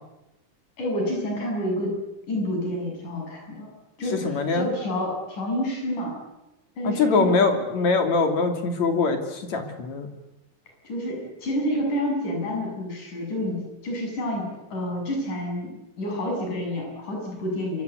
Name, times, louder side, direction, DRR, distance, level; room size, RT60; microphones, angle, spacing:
voice 1, 0.8-2.0 2.3-3.7 4.0-6.2 6.8-7.6 10.8-13.6 13.8-17.8, equal, 75° left, 0 dB, 8.9 m, -29 dB
voice 2, 4.1-4.7 6.8-10.1, left 4 dB, 60° left, 6 dB, 4.1 m, -23 dB
26.0 x 24.0 x 8.4 m, 0.95 s
omnidirectional pair, 3.6 m